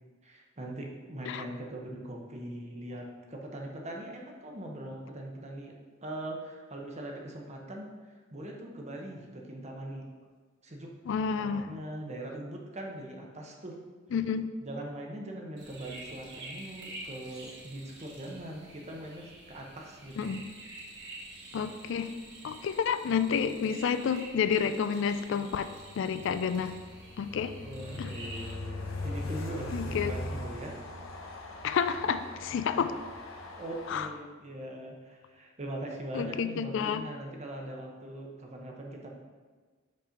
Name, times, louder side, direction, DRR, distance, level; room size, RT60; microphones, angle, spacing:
voice 1, 0.2-5.7 6.0-7.9 8.3-10.0 10.6-10.9 11.4-13.8 14.6-20.3 27.6-30.8 33.5-39.1, right 1 dB, 35° right, 0 dB, 0.9 m, -41 dB
voice 2, 11.1-11.7 14.1-14.5 20.2-20.4 21.5-22.1 22.4-25.7 26.0-26.8 27.2-27.5 28.0-28.1 29.7-30.1 31.6-33.0 33.9-34.1 36.1-37.0, left 6 dB, 65° left, 11 dB, 0.3 m, -30 dB
sound 1, 15.6-28.5, right 2 dB, 65° right, 1.2 m, -48 dB
Train, 25.7-34.0, left 1 dB, 85° left, 0.8 m, -40 dB
5.3 x 4.2 x 5.1 m, 1.4 s
head